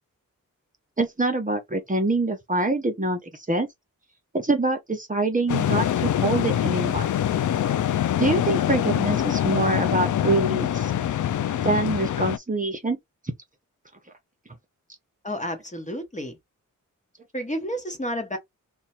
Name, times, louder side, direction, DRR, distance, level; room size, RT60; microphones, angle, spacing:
voice 1, 1.0-3.7 4.3-7.1 8.2-10.9 11.6-13.0, right 2 dB, 25° right, 0.9 m, -25 dB
sound 1, 5.5-12.4, left 10 dB, 60° left, 0.4 m, -24 dB
voice 2, 15.2-16.4 17.3-18.4, equal, 20° left, 1.1 m, -31 dB
3.1 x 2.3 x 4.3 m
wide cardioid pair, 80°, 34 cm